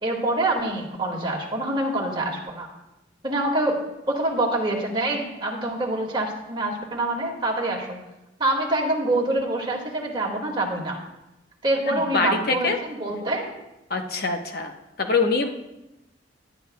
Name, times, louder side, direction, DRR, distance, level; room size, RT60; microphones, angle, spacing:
voice 1, 0.0-2.7 3.2-8.0 8.4-11.0 11.6-13.5, right 2 dB, 25° right, 0 dB, 2.0 m, -26 dB
voice 2, 11.9-12.8 13.9-14.7 15.0-15.5, left 4 dB, 55° left, 4 dB, 1.0 m, -24 dB
19.0 x 10.5 x 2.3 m, 0.94 s
head